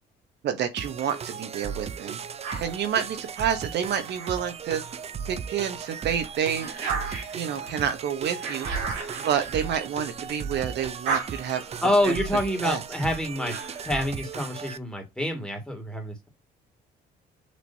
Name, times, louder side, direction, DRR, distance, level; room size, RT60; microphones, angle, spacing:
voice 1, 0.4-2.2 2.6-4.8 5.3-6.7 7.3-8.7 9.2-11.6 12.0-12.1 12.6-12.8, right 8 dB, 65° right, 0.9 m, -28 dB
sound 1, 0.8-14.8, right 7 dB, 35° right, 0.4 m, -36 dB
sound 2, 2.4-5.1 5.6-10.4 10.7-14.0, right 5 dB, 85° right, 2.8 m, -36 dB
voice 2, 11.8-13.5 13.8-16.3, left 1 dB, 5° left, 2.0 m, -27 dB
6.3 x 3.0 x 2.7 m
supercardioid pair, 80°, 19 cm